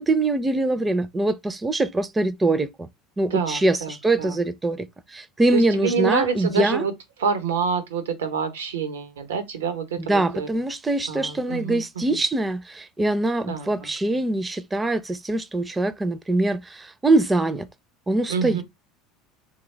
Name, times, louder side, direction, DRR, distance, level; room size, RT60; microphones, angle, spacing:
voice 1, 0.0-2.9 3.2-6.8 10.1-17.7 18.1-18.6, right 2 dB, 15° right, 0.5 m, -23 dB
voice 2, 3.3-4.4 5.5-6.9 7.2-10.5 11.1-12.2 13.5-13.9 18.3-18.6, right 6 dB, 90° right, 0.8 m, -27 dB
3.4 x 2.3 x 3.2 m
hypercardioid pair, 85°, 0 cm